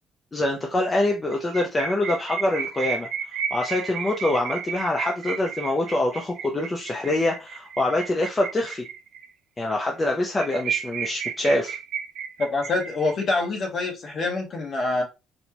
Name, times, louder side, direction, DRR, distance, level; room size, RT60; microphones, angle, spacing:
voice 1, 0.3-3.1 3.5-8.8 9.6-11.8, left 1 dB, 15° left, 0.4 m, -25 dB
sound 1, 1.3-9.3 9.6-9.7 10.0-10.1 10.3-13.5, right 7 dB, 65° right, 0.6 m, -32 dB
voice 2, 12.4-15.0, left 3 dB, 40° left, 1.1 m, -25 dB
4.2 x 2.1 x 2.9 m
cardioid pair, 160°, 0 cm